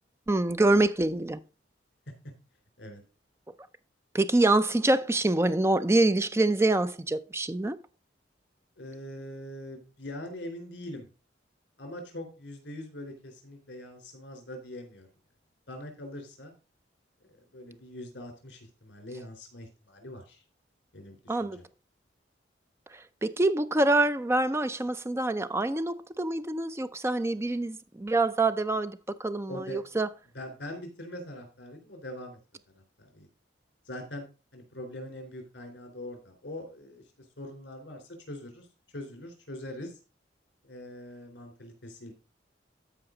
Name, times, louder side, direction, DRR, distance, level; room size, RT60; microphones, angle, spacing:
voice 1, 0.3-1.4 4.1-7.8 21.3-21.6 23.2-30.1, right 2 dB, 15° right, 0.5 m, -25 dB
voice 2, 8.8-11.1 11.8-15.1 15.7-16.5 17.3-20.4 20.9-21.6 29.5-30.0 30.3-32.4 32.7-33.3 33.9-34.2 34.5-37.0 37.4-38.7 38.9-40.0 40.6-42.1, left 1 dB, 70° left, 3.9 m, -42 dB
13.5 x 5.2 x 3.9 m
head